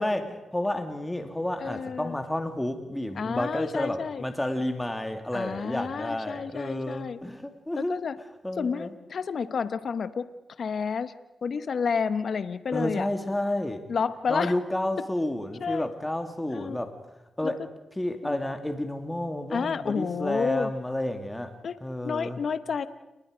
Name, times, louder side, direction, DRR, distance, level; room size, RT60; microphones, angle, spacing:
voice 1, 0.0-8.0 8.4-9.0 12.7-13.9 14.3-17.1 17.4-17.6 18.0-22.4, left 1 dB, 10° left, 6 dB, 2.4 m, -31 dB
voice 2, 1.6-2.2 3.2-4.2 5.3-7.2 7.8-8.1 8.6-10.3 10.6-11.1 11.4-13.1 13.9-14.6 15.6-15.9 16.5-16.8 17.4-17.5 18.2-18.4 19.5-20.7 21.6-21.8 22.0-22.9, left 6 dB, 65° left, 12 dB, 1.1 m, -30 dB
29.5 x 20.5 x 5.1 m, 0.98 s
cardioid pair, 60°, 0 cm